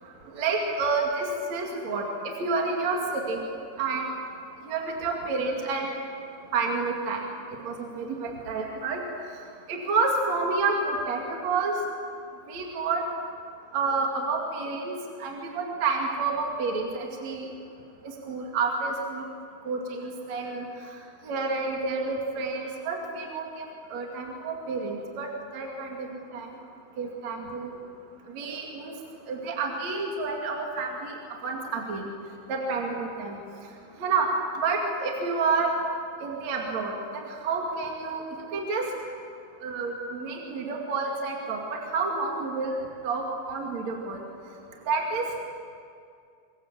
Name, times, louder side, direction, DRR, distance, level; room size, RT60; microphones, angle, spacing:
voice 1, 0.3-2.0 2.4-3.5 3.8-4.1 4.7-5.9 6.5-7.2 7.6-9.0 9.7-11.8 12.5-13.0 13.7-14.9 15.2-17.5 18.3-19.2 19.7-20.7 21.2-26.1 26.3-26.5 27.0-27.8 28.3-28.9 29.3-31.1 31.4-32.1 32.5-33.4 34.0-34.3 34.6-35.7 36.2-38.8 39.6-42.8 43.0-44.2 44.9-45.2, right 4 dB, 50° right, 0 dB, 3.4 m, -29 dB
26.5 x 22.5 x 7.6 m, 2.4 s
omnidirectional pair, 4.3 m